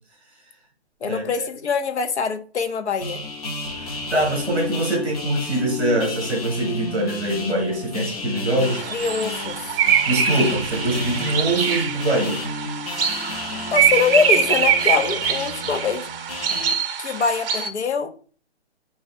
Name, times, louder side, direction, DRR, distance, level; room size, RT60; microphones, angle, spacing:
voice 1, 1.0-3.2 8.9-9.7 13.7-16.1 17.0-18.1, left 5 dB, 85° left, 0.8 m, -23 dB
sound 1, 3.0-16.7, left 3 dB, 35° left, 0.7 m, -33 dB
voice 2, 3.8-8.9 10.1-12.4, right 1 dB, ahead, 0.4 m, -23 dB
sound 2, 8.6-17.7, right 8 dB, 60° right, 0.6 m, -23 dB
4.8 x 2.4 x 4.2 m
hypercardioid pair, 165°, 33 cm